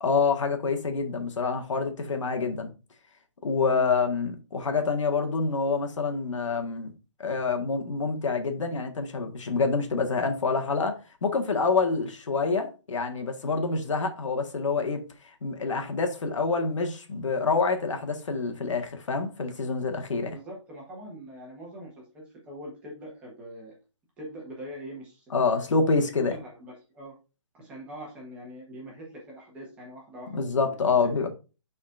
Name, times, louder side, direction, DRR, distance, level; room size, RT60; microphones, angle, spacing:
voice 1, 0.0-2.7 3.4-6.9 7.2-15.0 15.4-20.3 25.3-26.3 30.3-31.3, left 4 dB, 85° left, 1.6 m, -27 dB
voice 2, 20.2-23.7 24.2-25.3 26.0-27.2 27.5-31.3, right 1 dB, 10° right, 1.3 m, -43 dB
10.0 x 4.3 x 2.6 m
hypercardioid pair, 175°, 16 cm